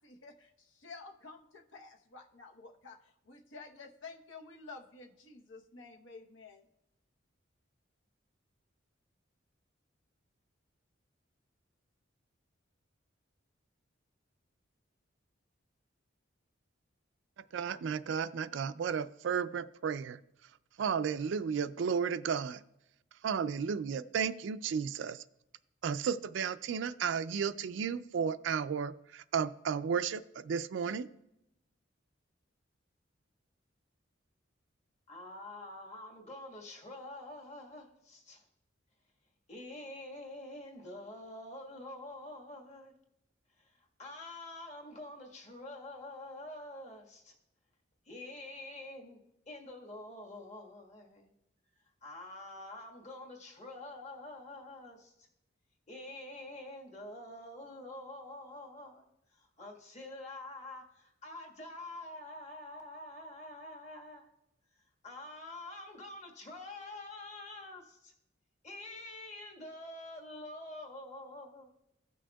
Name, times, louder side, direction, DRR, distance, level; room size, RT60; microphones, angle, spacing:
voice 1, 0.0-3.0 3.3-6.6, left 4 dB, 80° left, 2 dB, 0.9 m, -51 dB
voice 2, 17.5-20.2 20.8-22.6 23.2-25.2 25.8-31.1, right 6 dB, 70° right, 14 dB, 0.3 m, -33 dB
voice 3, 35.1-38.4 39.5-42.9 43.6-47.3 48.0-49.2 49.5-51.3 52.0-55.3 55.9-59.0 59.3-64.3 65.0-68.1 68.6-71.7, left 1 dB, 35° left, 0 dB, 1.5 m, -47 dB
16.0 x 6.2 x 2.3 m, 0.84 s
head